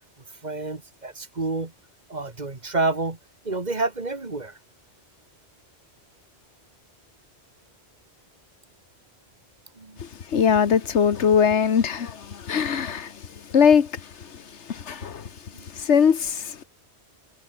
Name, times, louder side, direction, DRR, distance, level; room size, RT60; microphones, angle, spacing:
voice 1, 0.4-1.7 2.1-3.2 3.4-4.6 9.8-10.0 15.5-15.7, right 3 dB, 40° right, 2.0 m, -28 dB
voice 2, 10.3-13.1 13.5-13.9 14.7-15.3 15.8-16.6, left 7 dB, 85° left, 1.5 m, -20 dB
omnidirectional pair, 1.1 m